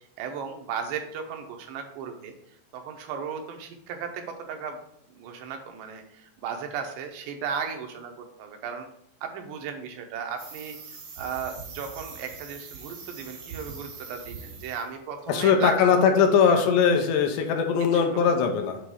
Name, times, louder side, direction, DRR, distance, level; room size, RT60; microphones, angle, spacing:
voice 1, 0.0-4.8 5.2-8.9 9.2-16.1 17.9-18.2, right 6 dB, 85° right, 4 dB, 3.1 m, -36 dB
sound 1, 10.4-14.9 15.2-15.5, right 5 dB, 65° right, 3.6 m, -42 dB
voice 2, 15.3-18.8, left 6 dB, 85° left, 4 dB, 2.9 m, -21 dB
8.2 x 3.0 x 6.2 m, 0.72 s
omnidirectional pair, 4.8 m